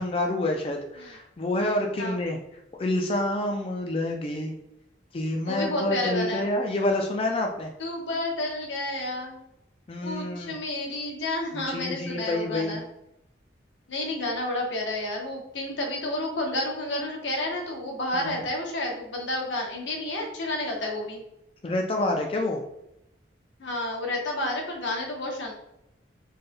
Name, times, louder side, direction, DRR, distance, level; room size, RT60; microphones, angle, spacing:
voice 1, 0.0-2.4 2.8-4.5 5.1-7.7 9.9-10.5 11.5-12.8 18.1-18.4 21.6-22.6, left 1 dB, 30° left, 2 dB, 0.4 m, -28 dB
voice 2, 5.4-6.5 7.8-9.4 10.0-12.8 13.9-21.2 23.6-25.5, left 1 dB, 90° left, 1 dB, 0.9 m, -30 dB
4.4 x 3.2 x 2.2 m, 0.86 s
head